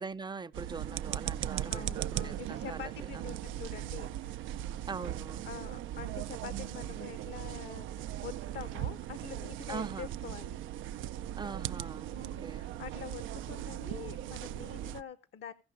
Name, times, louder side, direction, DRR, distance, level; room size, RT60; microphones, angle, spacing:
voice 1, 0.0-3.3 4.9-5.5 9.7-10.1 11.4-12.1 12.4-12.6, right 4 dB, 20° right, 0.5 m, -42 dB
sound 1, 0.5-15.0, right 12 dB, 85° right, 0.4 m, -38 dB
voice 2, 1.7-4.6 5.4-10.6 12.1-15.5, left 8 dB, 60° left, 0.7 m, -46 dB
16.0 x 5.5 x 5.1 m
cardioid pair, 90°, 20 cm